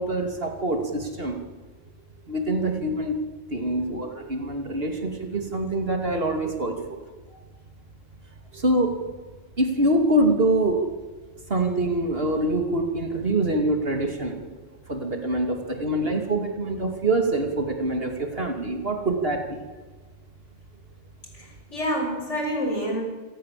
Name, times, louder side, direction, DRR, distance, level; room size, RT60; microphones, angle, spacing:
voice 1, 0.0-1.4 2.3-3.2 3.5-6.8 8.5-9.0 9.6-10.8 11.5-14.4 14.9-19.6, right 1 dB, 50° right, 4 dB, 3.0 m, -25 dB
voice 2, 21.3-23.0, equal, 70° left, 2 dB, 6.6 m, -28 dB
26.5 x 18.5 x 7.7 m, 1.3 s
omnidirectional pair, 1.3 m